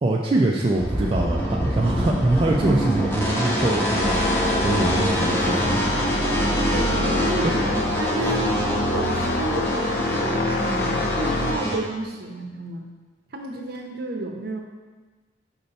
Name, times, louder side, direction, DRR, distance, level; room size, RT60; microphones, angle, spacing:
voice 1, 0.0-5.8 7.4-7.5, right 2 dB, 30° right, -2 dB, 0.4 m, -23 dB
sound 1, 0.8-11.8, equal, 15° left, 0.9 m, -25 dB
sound 2, 4.0-11.6, left 2 dB, 60° left, 0.4 m, -26 dB
voice 2, 6.7-12.9 13.3-14.6, right 2 dB, 60° right, 3 dB, 0.7 m, -31 dB
5.5 x 4.4 x 4.0 m, 1.3 s
head